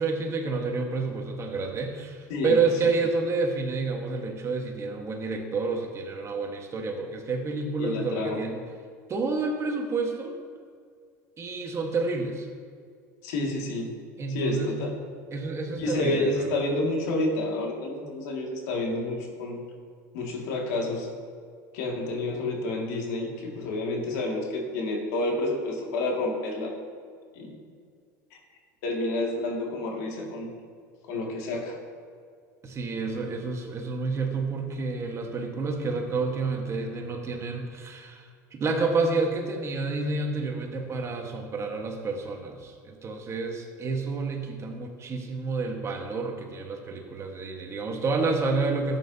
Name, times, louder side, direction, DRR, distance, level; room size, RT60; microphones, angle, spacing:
voice 1, 0.0-8.6 9.1-10.3 11.4-12.5 14.2-14.8 15.3-16.6 32.6-49.0, right 3 dB, 35° right, 2 dB, 1.5 m, -29 dB
voice 2, 7.8-8.4 13.2-13.9 14.3-14.9 15.8-19.6 20.1-21.1 21.7-26.7 27.3-27.6 28.3-28.4 28.8-30.5 31.1-31.8, left 2 dB, 75° left, -1 dB, 2.2 m, -29 dB
12.5 x 8.9 x 2.8 m, 2.1 s
supercardioid pair, 95°, 9 cm